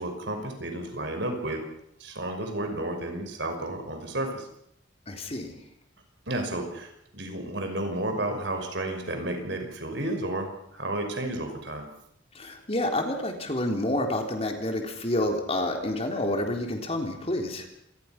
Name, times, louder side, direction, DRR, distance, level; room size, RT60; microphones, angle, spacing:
voice 1, 0.0-1.6 2.0-4.5 6.3-11.9, right 1 dB, 65° right, 5 dB, 5.7 m, -32 dB
voice 2, 5.1-5.6 12.3-17.7, left 1 dB, 30° left, 3 dB, 3.6 m, -29 dB
27.0 x 20.5 x 6.0 m, 0.76 s
head